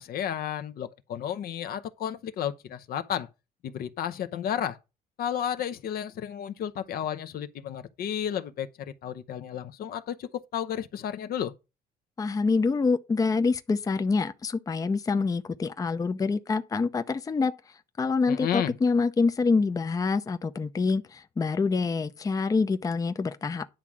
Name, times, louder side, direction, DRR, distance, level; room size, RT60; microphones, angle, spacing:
voice 1, 0.0-3.3 3.6-4.8 5.2-11.5 18.3-18.8, left 9 dB, 60° left, 0.8 m, -32 dB
voice 2, 12.2-17.5 18.0-23.7, left 4 dB, 20° left, 0.6 m, -26 dB
10.0 x 3.6 x 7.3 m
cardioid pair, 110°, 17 cm